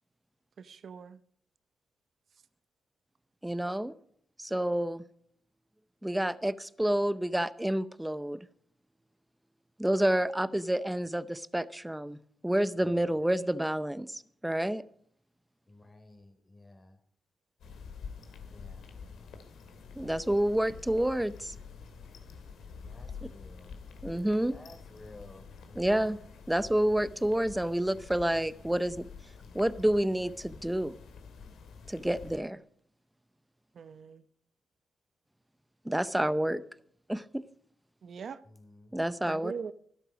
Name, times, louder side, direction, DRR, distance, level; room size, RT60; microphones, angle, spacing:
voice 1, 0.6-1.2 33.8-34.2 38.0-38.4 39.3-39.7, right 6 dB, 60° right, 0.8 m, -41 dB
voice 2, 3.4-3.9 4.4-5.1 6.0-8.4 9.8-12.2 12.4-14.8 20.0-21.5 24.0-24.6 25.8-26.2 26.5-29.1 29.5-30.9 31.9-32.6 35.8-36.6 37.1-37.4 38.9-39.5, right 1 dB, 5° right, 0.7 m, -29 dB
voice 3, 12.8-13.2 15.7-17.0 18.5-18.9 22.8-23.8 24.3-26.1 38.4-39.0, left 2 dB, 25° left, 3.5 m, -54 dB
sound 1, 17.6-32.4, left 5 dB, 90° left, 2.7 m, -48 dB
15.0 x 12.5 x 5.1 m
cardioid pair, 105°, 0 cm